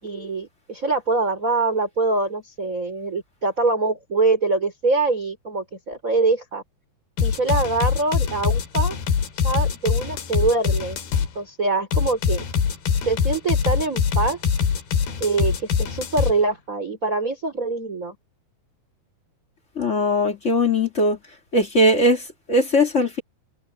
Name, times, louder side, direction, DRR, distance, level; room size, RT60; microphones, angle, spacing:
voice 1, 0.0-6.6 7.2-9.0 9.4-11.0 11.4-12.4 13.1-14.4 15.2-18.2, right 3 dB, 20° right, 5.7 m, -24 dB
sound 1, 7.2-11.3 11.9-16.3, left 7 dB, 75° left, 4.6 m, -23 dB
voice 2, 19.7-21.2 21.5-23.2, left 1 dB, 25° left, 1.6 m, -20 dB
omnidirectional pair, 4.4 m